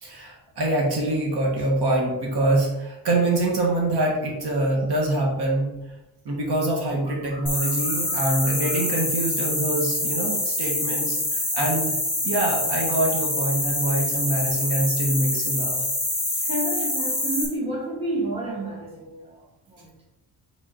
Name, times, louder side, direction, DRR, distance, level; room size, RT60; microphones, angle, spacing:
voice 1, 0.0-5.7 6.2-12.0 12.2-15.8, right 2 dB, 65° right, -2 dB, 1.7 m, -25 dB
sound 1, 7.5-17.5, left 1 dB, 10° left, 2.0 m, -26 dB
voice 2, 16.4-19.9, right 1 dB, 15° right, -4 dB, 1.5 m, -30 dB
5.0 x 4.2 x 4.4 m, 0.98 s
wide cardioid pair, 140°, 42 cm